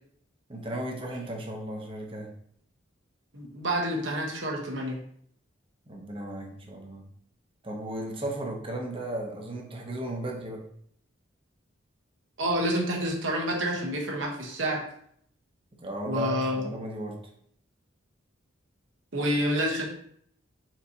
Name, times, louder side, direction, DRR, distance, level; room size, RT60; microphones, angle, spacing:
voice 1, 0.5-2.3 5.9-7.1 7.6-10.6 15.8-17.2, right 1 dB, 30° right, 1 dB, 0.8 m, -35 dB
voice 2, 3.3-5.0 12.4-14.8 16.1-16.6 19.1-19.8, equal, 75° right, 0 dB, 1.1 m, -28 dB
4.4 x 3.9 x 2.8 m, 0.65 s
head